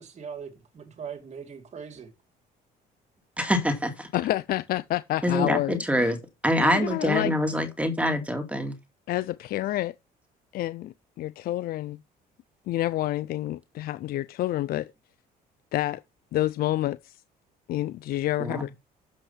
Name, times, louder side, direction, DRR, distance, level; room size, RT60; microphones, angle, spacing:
voice 1, 0.0-2.1, right 6 dB, 40° right, 2.5 m, -40 dB
voice 2, 3.4-4.1 5.2-8.8 18.4-18.6, equal, 5° right, 2.4 m, -25 dB
voice 3, 4.1-6.1 6.6-7.3 9.1-9.9 10.5-12.0 12.7-14.9 15.7-16.0 16.3-17.2 17.7-18.7, left 14 dB, 65° left, 0.5 m, -28 dB
7.5 x 5.5 x 5.7 m
cardioid pair, 110°, 17 cm